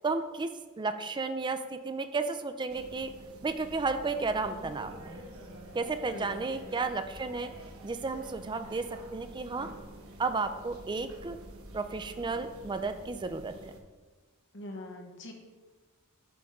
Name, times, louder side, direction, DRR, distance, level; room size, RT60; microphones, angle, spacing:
voice 1, 0.0-0.5 0.8-3.1 3.4-5.2 5.7-7.5 7.8-9.7 10.2-11.4 11.7-13.6, right 3 dB, 20° right, 9 dB, 0.4 m, -33 dB
sound 1, 2.7-13.8, right 1 dB, 70° right, 1.0 m, -48 dB
voice 2, 6.1-6.7 14.5-15.3, left 1 dB, 55° left, 3 dB, 1.1 m, -43 dB
7.7 x 3.6 x 5.3 m, 1.3 s
head